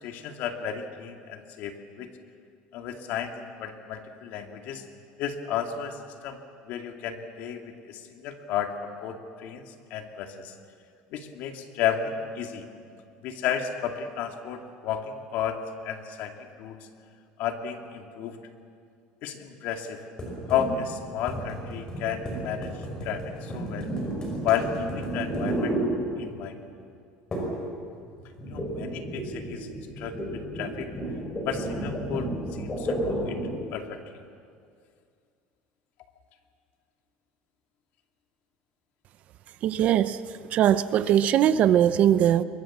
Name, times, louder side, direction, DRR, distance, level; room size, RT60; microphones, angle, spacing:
voice 1, 0.0-2.1 2.7-4.8 5.2-10.5 11.1-12.7 13.2-16.8 17.4-18.4 19.2-20.0 20.5-24.0 24.4-25.8 26.2-26.6 28.5-29.7 30.0-30.9 31.4-33.4 33.7-34.0, left 8 dB, 55° left, 4 dB, 2.3 m, -33 dB
sound 1, 20.2-26.5 27.3-27.7 27.9-33.6, right 1 dB, 20° left, 5.6 m, -32 dB
voice 2, 39.6-40.2 40.5-42.4, right 10 dB, 45° right, 13 dB, 0.7 m, -20 dB
23.5 x 22.5 x 7.4 m, 2.3 s
cardioid pair, 150°, 3 cm